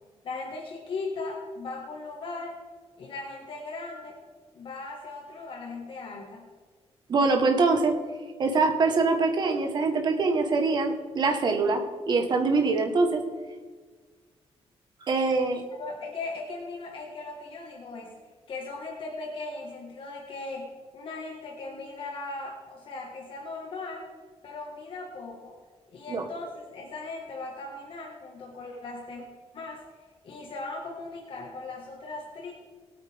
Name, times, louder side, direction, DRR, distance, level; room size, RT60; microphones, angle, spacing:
voice 1, 0.2-2.6 3.0-4.2 4.5-6.5 15.8-18.1 18.5-24.0 24.4-25.6 25.9-29.2 29.5-29.8 30.2-32.5, left 3 dB, 55° left, -1 dB, 1.8 m, -38 dB
voice 2, 7.1-7.9 8.4-13.2 15.0-15.6 26.1-26.2, right 3 dB, 45° right, 4 dB, 1.4 m, -24 dB
19.5 x 8.9 x 3.6 m, 1.5 s
wide cardioid pair, 175°, 11 cm